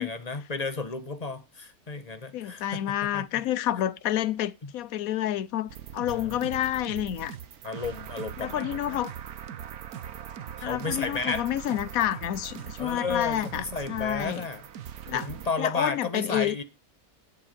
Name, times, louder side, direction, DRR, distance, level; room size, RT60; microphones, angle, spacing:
voice 1, 0.0-3.3 4.6-4.7 6.1-6.5 7.6-9.0 10.6-11.5 12.8-14.6 15.1-16.6, left 4 dB, 30° left, 1.4 m, -33 dB
voice 2, 2.3-7.4 8.4-9.1 10.6-14.4 15.1-15.3 15.6-16.6, left 12 dB, 75° left, 1.2 m, -29 dB
sound 1, 5.7-15.5, right 9 dB, 85° right, 1.5 m, -41 dB
11.0 x 8.6 x 5.3 m
omnidirectional pair, 1.5 m